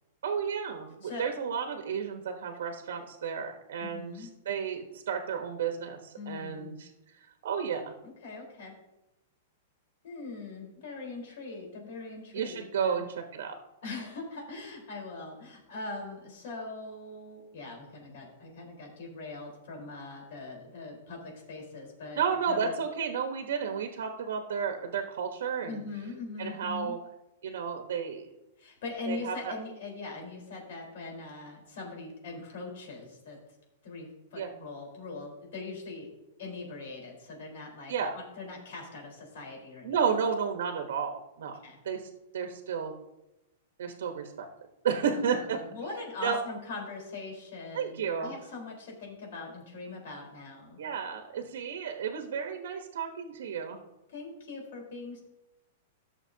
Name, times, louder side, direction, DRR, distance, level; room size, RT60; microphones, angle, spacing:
voice 1, 0.2-6.9 7.4-7.9 12.3-13.1 13.3-13.5 22.2-25.8 26.4-27.0 27.4-28.3 29.1-29.4 34.4-34.5 37.9-38.2 39.8-41.6 41.8-42.9 43.8-44.5 44.8-45.6 46.2-46.4 47.7-48.3 50.8-53.8, right 6 dB, 80° right, 5 dB, 1.2 m, -32 dB
voice 2, 3.8-4.3 6.1-6.8 8.0-8.8 10.0-13.0 13.8-22.7 25.6-27.0 28.6-33.4 33.8-36.1 36.4-40.0 41.6-41.8 45.1-50.8 54.1-55.2, left 3 dB, 60° left, 0 dB, 4.2 m, -41 dB
16.5 x 7.0 x 2.8 m, 0.94 s
supercardioid pair, 165°, 0 cm